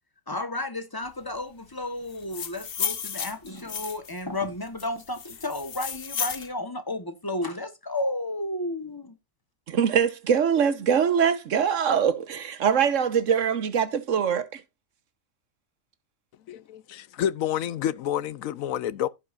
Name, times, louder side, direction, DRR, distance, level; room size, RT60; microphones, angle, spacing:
voice 1, 0.3-9.1, left 1 dB, 15° left, 1.1 m, -32 dB
sound 1, 2.1-4.2 4.8-6.5, left 7 dB, 50° left, 1.0 m, -33 dB
voice 2, 9.7-14.6, right 7 dB, 70° right, 1.3 m, -23 dB
voice 3, 16.5-19.1, left 10 dB, 80° left, 1.1 m, -29 dB
16.0 x 5.4 x 2.5 m
omnidirectional pair, 1.4 m